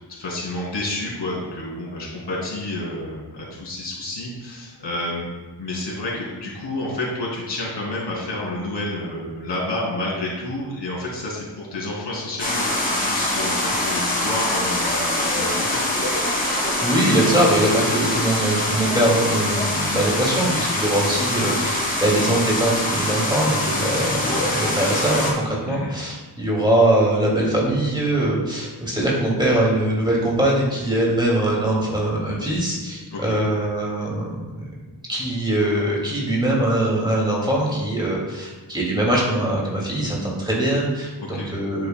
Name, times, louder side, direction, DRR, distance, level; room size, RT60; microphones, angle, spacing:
voice 1, 0.1-5.3 5.6-16.1 22.2-22.3 25.7-25.9 33.1-33.4 41.2-41.5, left 1 dB, 85° left, -4 dB, 2.8 m, -30 dB
sound 1, 12.4-25.3, left 1 dB, 20° left, 2.3 m, -24 dB
voice 2, 16.8-34.4 35.1-41.9, right 1 dB, 10° right, -4 dB, 2.3 m, -22 dB
10.5 x 7.8 x 2.2 m, 1.2 s
wide cardioid pair, 130°, 41 cm